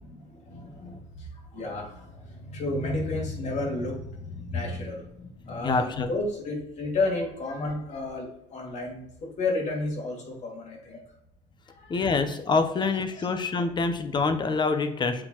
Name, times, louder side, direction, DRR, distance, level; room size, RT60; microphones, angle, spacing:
voice 1, 0.0-11.0 11.7-12.1 12.7-12.8 13.1-13.3 13.6-13.7, left 2 dB, 50° left, -1 dB, 2.5 m, -32 dB
voice 2, 5.6-6.1 11.9-15.2, left 4 dB, 30° left, 8 dB, 0.9 m, -26 dB
7.5 x 4.5 x 3.1 m, 0.87 s
supercardioid pair, 95°, 15 cm